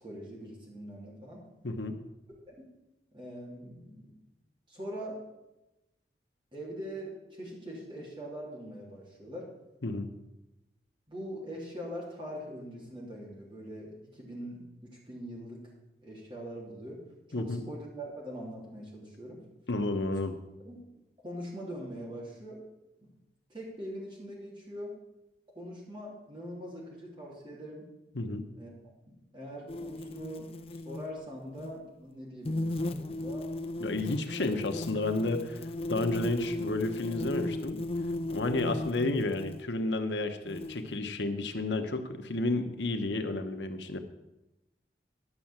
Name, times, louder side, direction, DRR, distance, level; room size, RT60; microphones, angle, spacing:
voice 1, 0.0-1.4 2.5-2.6 3.1-4.1 4.7-5.2 6.5-9.5 11.1-15.6 16.0-17.0 17.3-19.4 20.6-20.8 21.2-22.6 23.0-23.1 23.5-24.9 25.5-27.9 28.6-28.7 29.1-33.5, equal, 30° right, -4 dB, 3.4 m, -42 dB
voice 2, 1.6-2.0 9.8-10.1 17.3-17.6 19.7-20.3 28.1-28.4 33.8-35.6 35.9-37.8 38.3-44.0, left 2 dB, 90° left, 6 dB, 1.1 m, -31 dB
sound 1, 29.7-31.1 31.5-31.8 32.5-39.6 40.5-41.0, left 2 dB, 35° left, 0.5 m, -36 dB
11.0 x 6.5 x 7.4 m, 0.97 s
head